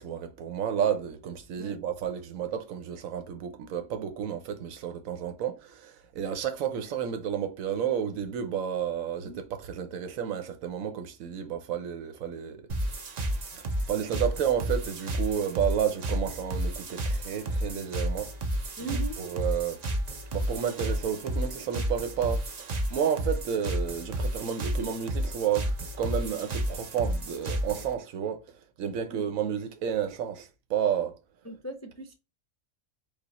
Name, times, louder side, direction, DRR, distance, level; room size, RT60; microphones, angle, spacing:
voice 1, 0.0-12.6 13.0-18.3 18.8-18.9 19.2-19.8 20.3-31.2, right 8 dB, 85° right, 1.1 m, -31 dB
sound 1, 12.7-27.9, right 1 dB, 40° right, 0.6 m, -31 dB
voice 2, 18.8-19.2 29.1-29.3 31.4-32.1, right 3 dB, 25° left, 0.4 m, -38 dB
4.9 x 2.4 x 4.0 m
omnidirectional pair, 1.4 m